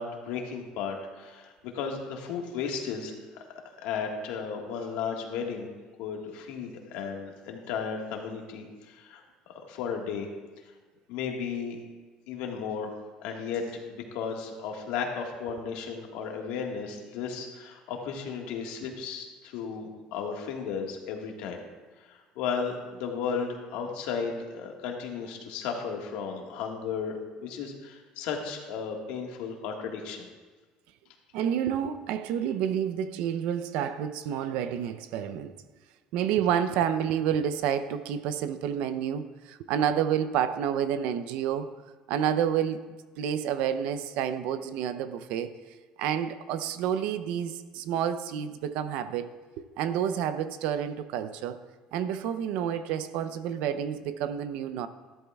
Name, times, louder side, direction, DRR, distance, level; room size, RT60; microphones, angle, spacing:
voice 1, 0.0-3.4 3.8-5.7 6.0-10.3 11.1-11.8 12.3-21.6 22.0-27.1 27.4-30.3, left 6 dB, 85° left, 1.5 m, -34 dB
voice 2, 31.3-35.5 36.1-41.7 42.1-45.5 46.0-49.3 49.8-51.6 51.9-54.9, right 9 dB, 75° right, 0.5 m, -29 dB
13.5 x 12.0 x 2.3 m
cardioid pair, 135°, 2 cm